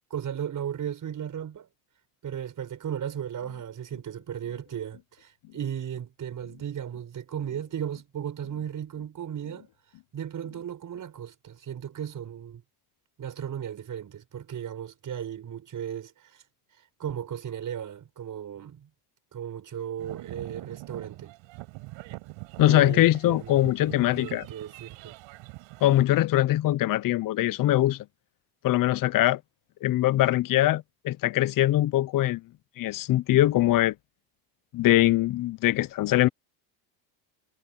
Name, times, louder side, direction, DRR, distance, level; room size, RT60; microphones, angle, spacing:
voice 1, 0.1-1.7 2.2-9.7 10.1-12.6 13.2-16.4 17.0-18.9 19.3-21.3 22.6-25.2, right 9 dB, 40° right, 5.5 m, -36 dB
sound 1, 3.4-11.0, left 21 dB, 70° left, 5.5 m, -55 dB
sound 2, 20.0-26.0, right 21 dB, 70° right, 5.2 m, -43 dB
voice 2, 22.6-24.5 25.8-28.0 28.6-29.4 29.8-32.4 32.8-33.9 34.7-36.3, left 15 dB, 40° left, 0.8 m, -22 dB
supercardioid pair, 110°, 49 cm